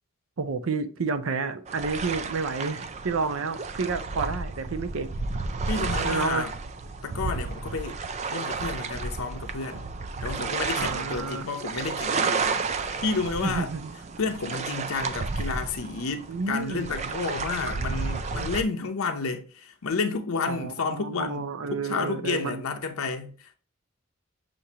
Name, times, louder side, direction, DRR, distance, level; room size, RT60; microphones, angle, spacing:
voice 1, 0.4-5.1 6.0-6.5 10.8-11.5 13.4-13.9 16.3-17.2 20.5-22.6, right 4 dB, 80° right, 0.6 m, -30 dB
sound 1, 1.7-18.6, right 4 dB, 30° right, 0.3 m, -32 dB
voice 2, 5.7-6.5 7.0-8.0 8.3-9.9 10.2-12.6 13.0-13.7 14.2-23.5, left 4 dB, 85° left, 0.6 m, -31 dB
7.0 x 2.6 x 2.8 m
head